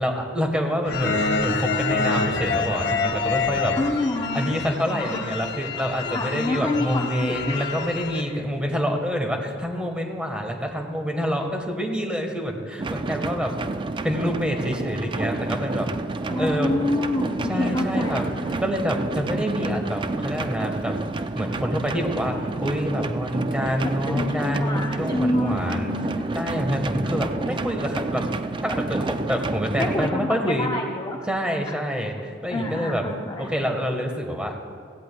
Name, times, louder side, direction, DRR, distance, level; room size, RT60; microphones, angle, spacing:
voice 1, 0.0-3.7 4.3-13.5 14.0-15.9 16.4-16.7 17.5-18.3 18.6-20.9 21.3-26.0 26.3-28.2 28.6-30.7 31.3-33.0 33.4-34.6, equal, 5° right, 2 dB, 1.3 m, -27 dB
sound 1, 0.8-8.2, left 4 dB, 65° left, 1.0 m, -27 dB
voice 2, 3.8-4.5 4.9-5.2 6.1-7.6 16.3-18.6 24.1-26.3 29.8-31.2 31.7-31.8 32.5-33.5, left 1 dB, 25° left, 0 dB, 0.7 m, -27 dB
sound 2, 12.8-30.1, right 3 dB, 25° right, 0.4 m, -29 dB
17.0 x 15.5 x 2.3 m, 2.4 s
head